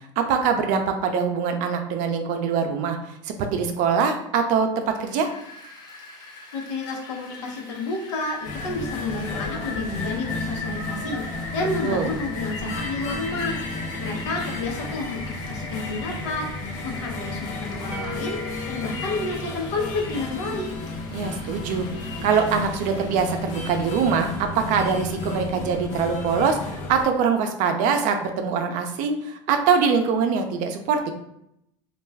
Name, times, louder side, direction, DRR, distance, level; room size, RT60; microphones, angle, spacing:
voice 1, 0.0-3.0 3.2-5.3 11.8-12.1 21.1-31.1, right 6 dB, 60° right, 6 dB, 0.5 m, -23 dB
Rain, 4.9-24.4, left 3 dB, 25° left, 0.8 m, -39 dB
voice 2, 6.5-11.2 11.5-13.6 14.0-18.4 18.7-20.7, left 3 dB, 80° left, 0 dB, 0.8 m, -30 dB
sound 1, 8.4-27.1, left 2 dB, 55° left, 0.6 m, -33 dB
sound 2, 17.9-20.8, left 2 dB, 10° right, 0.5 m, -40 dB
2.3 x 2.2 x 3.3 m, 0.79 s
supercardioid pair, 110°, 15 cm